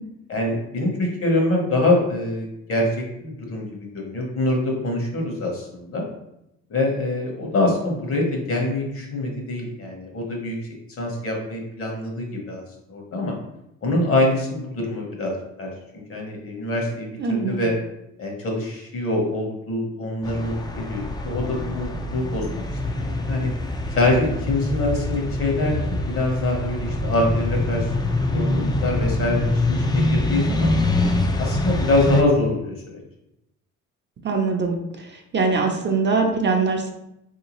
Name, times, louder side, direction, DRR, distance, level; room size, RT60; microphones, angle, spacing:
voice 1, 0.3-6.0 6.7-10.6 11.0-12.6 12.9-13.3 13.8-17.7 18.2-22.6 22.9-23.5 23.9-27.9 28.3-30.7 31.4-33.0, left 1 dB, 50° left, 0 dB, 1.1 m, -24 dB
voice 2, 17.2-17.6 34.2-35.1 35.3-36.9, right 4 dB, 35° right, 2 dB, 0.6 m, -22 dB
sound 1, 20.2-32.2, left 2 dB, 15° left, 0.4 m, -25 dB
3.3 x 2.8 x 3.0 m, 0.83 s
cardioid pair, 90°, 30 cm